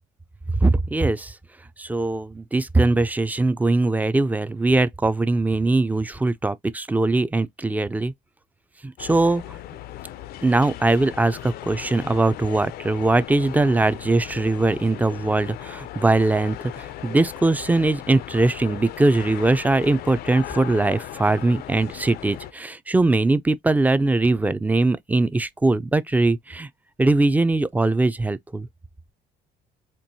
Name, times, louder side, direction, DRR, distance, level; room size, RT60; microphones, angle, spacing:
voice 1, 0.6-1.4 1.8-8.1 8.8-9.4 10.4-26.7 27.0-28.7, right 2 dB, 10° right, 0.4 m, -21 dB
sound 1, 9.0-22.5, left 13 dB, 65° left, 0.4 m, -37 dB
4.5 x 2.9 x 2.6 m
cardioid pair, 110°, 17 cm